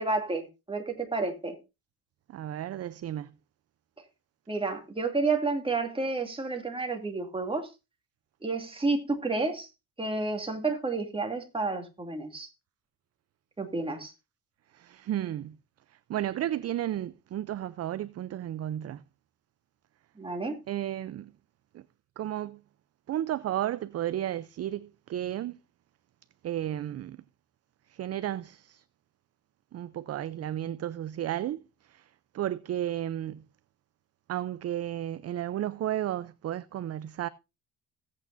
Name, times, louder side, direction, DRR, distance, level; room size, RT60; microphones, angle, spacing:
voice 1, 0.0-1.5 4.5-7.7 8.4-9.7 10.0-12.5 13.6-14.1 20.2-20.6, right 3 dB, 15° right, 2.5 m, -30 dB
voice 2, 2.3-3.3 14.7-15.6 15.9-19.0 20.7-21.3 21.7-21.8 22.2-22.6 23.1-25.6 26.4-27.2 27.9-28.8 29.7-33.4 34.3-37.3, right 12 dB, 40° right, 0.5 m, -33 dB
17.0 x 8.5 x 2.6 m
cardioid pair, 100°, 38 cm